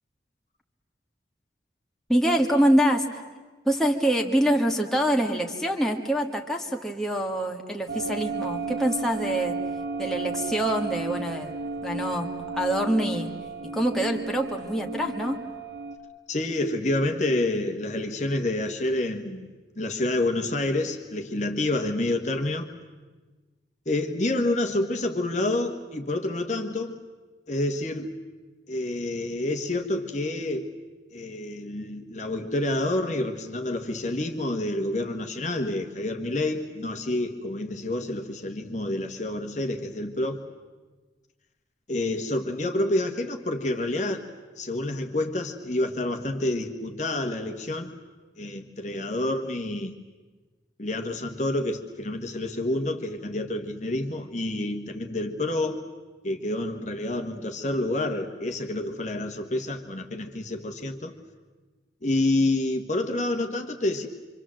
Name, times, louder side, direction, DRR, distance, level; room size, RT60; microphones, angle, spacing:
voice 1, 2.1-3.2 3.6-9.6 10.0-11.5 11.8-13.3 13.7-15.4, right 1 dB, 5° left, 1 dB, 1.7 m, -25 dB
sound 1, 7.9-16.0, right 3 dB, 55° right, 1.5 m, -33 dB
voice 2, 16.3-19.5 19.7-22.7 23.8-27.0 27.5-28.1 28.7-30.7 31.1-40.4 41.9-44.3 44.6-47.9 48.4-49.9 50.8-55.8 56.2-61.1 62.0-64.1, left 2 dB, 40° left, 5 dB, 1.5 m, -28 dB
26.5 x 25.5 x 7.7 m, 1.3 s
head